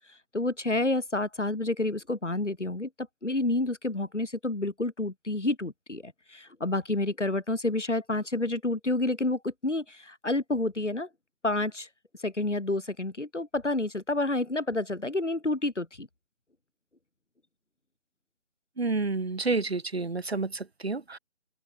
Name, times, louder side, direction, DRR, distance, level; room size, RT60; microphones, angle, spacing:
voice 1, 0.3-2.9 3.2-11.1 11.4-11.9 12.2-16.1, left 2 dB, 80° left, 4.9 m, -29 dB
voice 2, 18.8-21.2, right 3 dB, 60° right, 7.6 m, -29 dB
open air
figure-of-eight pair, 150°, 36 cm